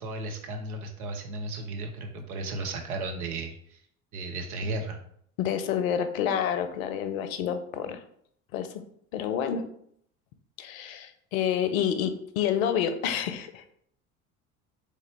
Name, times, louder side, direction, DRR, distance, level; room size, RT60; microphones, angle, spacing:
voice 1, 0.0-3.8 4.1-5.0, right 2 dB, 75° right, 4 dB, 0.8 m, -35 dB
voice 2, 5.4-8.0 8.5-8.8 9.1-9.6 10.6-13.7, left 8 dB, 65° left, 9 dB, 0.6 m, -28 dB
3.8 x 3.2 x 3.3 m, 0.68 s
figure-of-eight pair, 60°, 45 cm